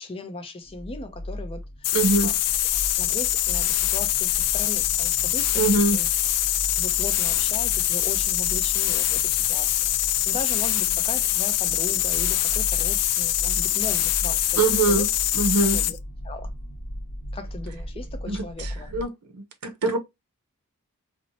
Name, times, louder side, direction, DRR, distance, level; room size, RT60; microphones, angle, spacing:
voice 1, 0.0-2.0 2.2-2.3 3.0-6.1 6.6-9.7 10.0-14.6 14.9-15.0 15.6-16.0 16.2-16.5 17.3-18.9, left 2 dB, 25° left, 0.5 m, -37 dB
sound 1, 0.6-19.0, equal, 65° left, 0.7 m, -37 dB
sound 2, 1.8-16.0, left 13 dB, 85° left, 0.3 m, -24 dB
voice 2, 1.9-2.3 5.6-6.0 14.6-15.1 15.3-15.8 18.3-20.0, right 3 dB, 75° right, 0.6 m, -23 dB
2.8 x 2.0 x 2.6 m
head